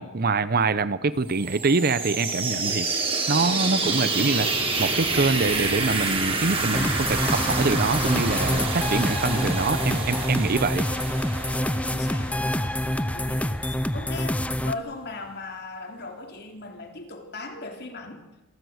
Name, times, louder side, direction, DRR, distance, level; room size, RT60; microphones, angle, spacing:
voice 1, 0.0-4.5 4.8-10.9, right 3 dB, 45° right, 15 dB, 0.7 m, -25 dB
sound 1, 1.3-13.0, right 3 dB, 25° right, 3.9 m, -28 dB
sound 2, 6.7-14.7, left 1 dB, 5° left, 0.6 m, -27 dB
voice 2, 11.9-18.2, left 3 dB, 50° left, 3 dB, 3.4 m, -38 dB
27.5 x 14.5 x 8.0 m, 1.0 s
head